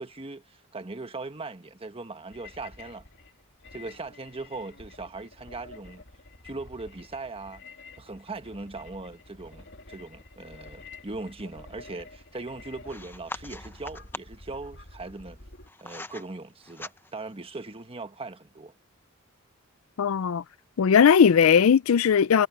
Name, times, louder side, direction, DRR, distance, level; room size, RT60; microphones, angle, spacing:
voice 1, 0.0-3.0 3.7-6.0 6.4-7.6 8.0-15.4 15.8-18.7, right 3 dB, 25° right, 1.3 m, -39 dB
sound 1, 2.3-15.7, left 3 dB, 60° left, 2.6 m, -49 dB
sound 2, 12.9-14.5 15.3-16.3 16.6-17.3, left 2 dB, 10° left, 0.8 m, -41 dB
voice 2, 20.0-20.4 20.8-22.5, left 7 dB, 75° left, 0.4 m, -18 dB
head